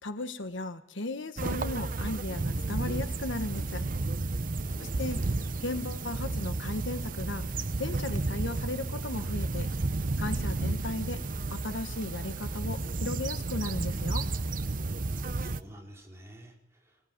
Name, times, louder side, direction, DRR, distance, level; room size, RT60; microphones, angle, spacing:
voice 1, 0.0-3.8 4.8-5.2 5.6-7.5 7.8-9.7 10.2-11.2 11.5-14.3, left 2 dB, 75° left, 9 dB, 1.3 m, -36 dB
sound 1, 1.4-15.6, right 2 dB, 45° right, 0.8 m, -32 dB
voice 2, 4.6-5.0 10.6-10.7 15.1-17.0, equal, 15° right, -1 dB, 4.2 m, -50 dB
21.0 x 18.5 x 8.9 m, 0.82 s
head